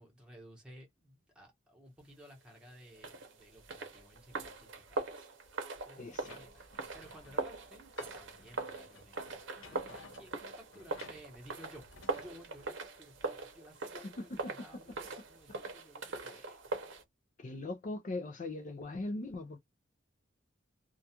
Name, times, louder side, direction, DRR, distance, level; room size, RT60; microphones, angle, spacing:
voice 1, 0.0-11.9 12.1-16.5, equal, 5° right, 1.0 m, -56 dB
sound 1, 2.9-17.0, right 3 dB, 75° right, 0.7 m, -41 dB
voice 2, 6.0-6.4 16.3-16.5 17.4-19.6, left 2 dB, 40° left, 0.4 m, -40 dB
sound 2, 6.1-12.3, left 4 dB, 75° left, 0.7 m, -57 dB
2.3 x 2.3 x 2.7 m
head